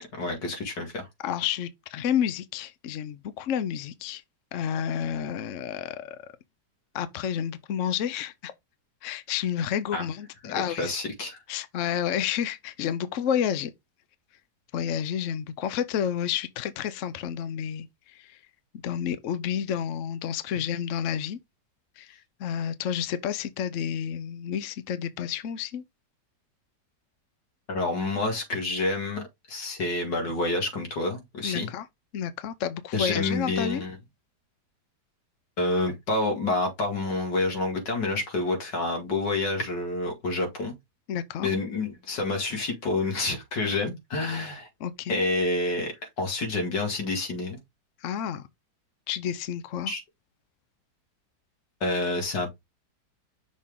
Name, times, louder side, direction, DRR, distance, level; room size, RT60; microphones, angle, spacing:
voice 1, 0.1-1.1 9.9-10.1 10.4-11.4 27.7-31.7 32.9-34.0 35.6-40.8 41.4-44.7 45.1-47.6 49.9-50.0 51.8-52.5, left 2 dB, 85° left, 2.8 m, -28 dB
voice 2, 1.2-4.2 4.5-6.2 6.9-8.5 9.0-11.0 11.5-13.7 14.7-18.4 18.8-21.4 22.0-25.8 31.4-31.8 32.1-33.8 41.1-41.5 44.8-45.2 48.0-48.5 49.1-49.9, left 9 dB, 60° left, 0.9 m, -30 dB
6.2 x 4.3 x 3.6 m
omnidirectional pair, 1.8 m